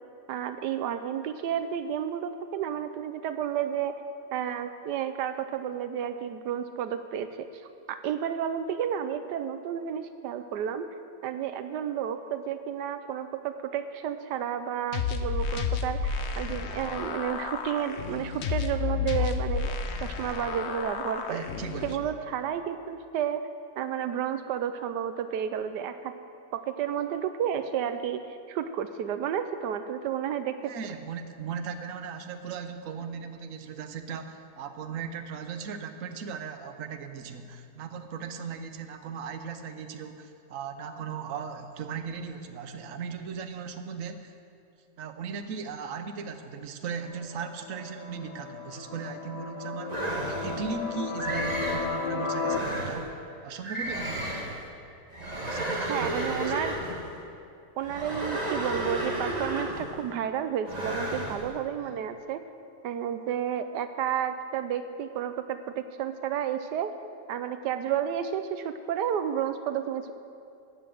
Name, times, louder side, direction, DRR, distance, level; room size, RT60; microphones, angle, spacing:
voice 1, 0.3-4.0 4.3-7.5 7.9-10.9 11.2-19.7 20.0-21.4 21.8-23.4 23.8-26.1 26.5-30.7 55.9-56.8 57.8-62.4 62.8-66.9 67.3-70.1, right 9 dB, 85° right, 10 dB, 1.2 m, -31 dB
sound 1, 14.9-21.9, left 6 dB, 50° left, 0.9 m, -31 dB
voice 2, 21.3-22.1 30.6-44.3 45.0-53.1 53.4-54.4 55.3-56.5 61.8-62.0, right 6 dB, 55° right, 8 dB, 1.2 m, -38 dB
sound 2, 47.0-52.6, left 5 dB, 85° left, 1.6 m, -34 dB
sound 3, 49.9-50.7 51.2-51.9 52.4-53.1 53.6-54.6 55.1-57.1 57.8-60.0 60.6-61.4, right 1 dB, 25° right, 1.7 m, -32 dB
13.5 x 9.1 x 7.7 m, 2.6 s
omnidirectional pair, 1.8 m